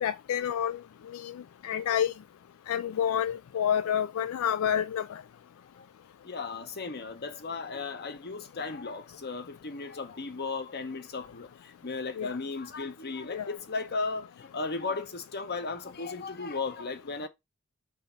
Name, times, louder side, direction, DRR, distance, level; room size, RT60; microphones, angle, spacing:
voice 1, 0.0-0.8 1.1-1.3 1.6-2.1 2.7-5.1 12.2-12.4 13.3-13.5, left 9 dB, 75° left, 0.3 m, -28 dB
voice 2, 6.2-17.3, left 4 dB, 50° left, 0.9 m, -36 dB
4.6 x 4.1 x 5.7 m
head